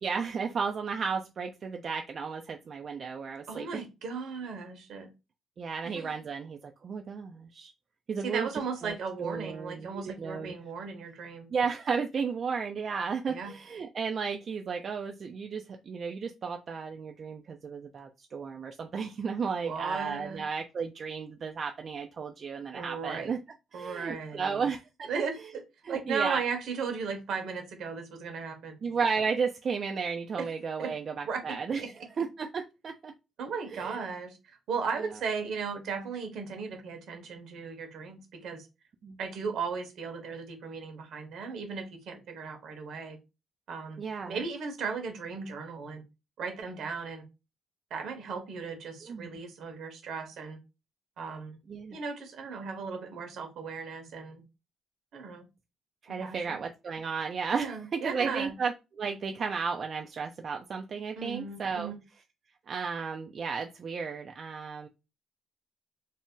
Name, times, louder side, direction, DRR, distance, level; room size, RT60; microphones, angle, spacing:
voice 1, 0.0-3.8 5.6-7.7 8.1-8.5 8.8-8.9 9.2-10.5 11.5-23.4 23.7-25.1 25.8-26.4 28.8-31.8 32.2-33.1 33.7-34.1 35.0-35.1 39.0-39.2 44.0-44.4 49.1-49.4 51.7-52.0 56.0-61.9 62.7-64.9, right 5 dB, 50° right, 4 dB, 0.3 m, -33 dB
voice 2, 3.5-5.1 5.8-6.1 8.2-11.5 13.3-13.5 19.6-20.4 22.7-23.3 23.7-24.7 25.1-25.6 25.9-28.7 30.4-30.5 30.8-30.9 31.3-31.4 31.8-31.9 33.4-38.7 39.2-43.2 43.7-46.0 46.4-47.2 47.9-50.6 51.2-51.6 51.9-54.4 55.1-55.5 56.2-56.6 57.5-58.5 61.2-62.0, right 5 dB, 75° right, 4 dB, 0.9 m, -36 dB
2.6 x 2.0 x 3.6 m, 0.27 s
cardioid pair, 90°, 0 cm